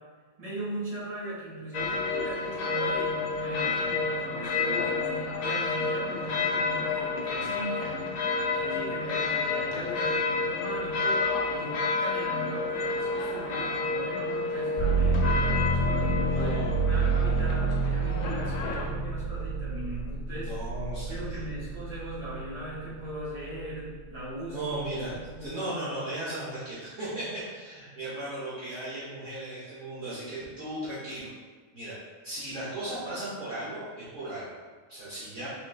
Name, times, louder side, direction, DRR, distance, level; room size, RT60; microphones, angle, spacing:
voice 1, 0.4-8.2 8.5-16.5 16.8-20.6 21.1-24.8 25.3-25.5, right 1 dB, 25° right, -9 dB, 1.4 m, -38 dB
sound 1, 1.7-18.9, left 4 dB, 85° left, 1.1 m, -30 dB
sound 2, 14.8-22.6 23.1-23.9, right 3 dB, 20° left, 0.8 m, -28 dB
voice 2, 16.2-17.0 20.4-21.2 24.5-31.3 31.7-31.9 32.2-34.5 34.9-35.5, right 1 dB, 60° right, -10 dB, 1.2 m, -36 dB
3.9 x 3.6 x 2.2 m, 1.5 s
omnidirectional pair, 1.6 m